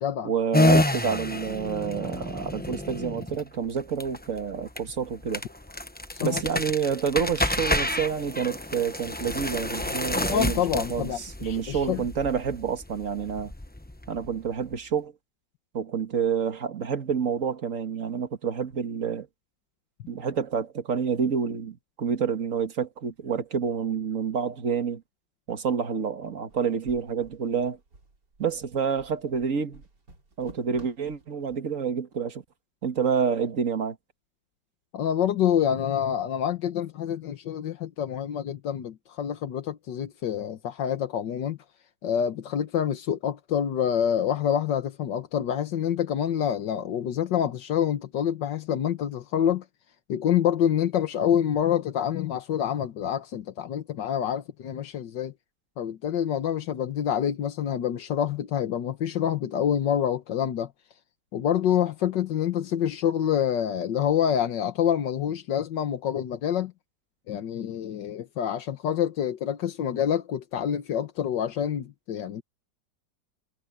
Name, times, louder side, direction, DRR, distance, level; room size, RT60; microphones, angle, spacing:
voice 1, 0.2-5.4 6.2-13.5 14.1-15.1 15.7-19.3 20.1-25.0 25.5-27.8 28.4-29.8 30.4-32.4 32.8-34.0, right 6 dB, 50° right, 2.0 m, -28 dB
sound 1, 0.5-14.8, left 1 dB, 10° left, 0.6 m, -29 dB
voice 2, 10.3-12.0 34.9-41.6 42.0-49.6 50.1-55.3 55.8-60.7 61.3-66.7 67.3-72.4, left 9 dB, 85° left, 1.8 m, -27 dB
sound 2, 26.5-31.6, right 3 dB, 70° right, 4.3 m, -51 dB
omnidirectional pair, 1.9 m